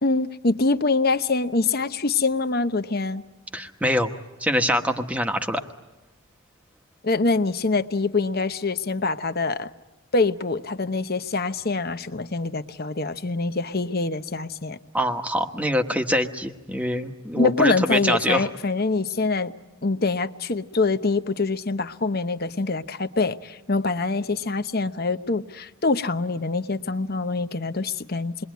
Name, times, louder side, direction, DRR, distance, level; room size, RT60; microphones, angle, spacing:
voice 1, 0.0-3.2 7.0-9.7 10.1-14.8 17.4-19.5 19.8-28.5, left 3 dB, 45° left, 10 dB, 0.9 m, -25 dB
voice 2, 3.5-4.1 4.4-5.6 14.9-18.5, equal, 5° right, 5 dB, 1.3 m, -24 dB
28.5 x 22.0 x 9.4 m, 1.1 s
head